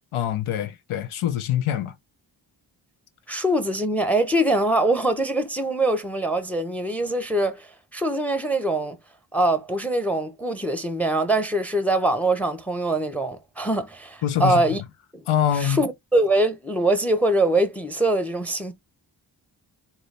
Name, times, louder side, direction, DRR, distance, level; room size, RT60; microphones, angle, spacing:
voice 1, 0.1-2.0 14.2-14.6 15.3-15.9, left 10 dB, 90° left, 0.8 m, -24 dB
voice 2, 3.3-9.0 9.3-14.8 15.1-15.2 15.6-18.7, right 1 dB, 5° left, 0.8 m, -23 dB
3.9 x 2.9 x 3.3 m
cardioid pair, 55°, 48 cm